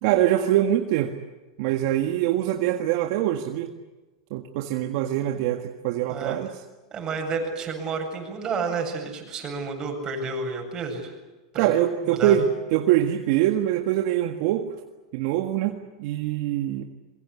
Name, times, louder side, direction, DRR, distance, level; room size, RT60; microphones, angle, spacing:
voice 1, 0.0-1.1 1.6-3.7 4.3-6.5 11.6-14.7 15.1-16.9, right 12 dB, 60° right, 4 dB, 1.7 m, -24 dB
voice 2, 6.1-6.4 6.9-11.1 11.5-11.7 12.0-12.4, right 4 dB, 30° right, 2 dB, 7.7 m, -30 dB
25.0 x 23.0 x 8.4 m, 1.1 s
hypercardioid pair, 125°, 2 cm